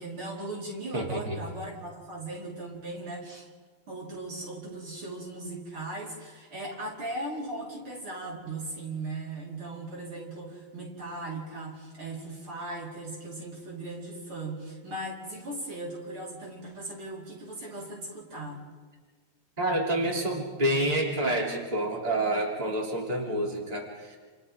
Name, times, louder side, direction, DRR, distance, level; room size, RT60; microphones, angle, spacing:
voice 1, 0.0-3.5 3.9-18.6, right 2 dB, 70° right, -4 dB, 5.3 m, -38 dB
voice 2, 0.9-1.4 19.6-24.2, right 1 dB, 15° right, -2 dB, 3.3 m, -28 dB
29.0 x 28.5 x 3.7 m, 1.4 s
omnidirectional pair, 2.4 m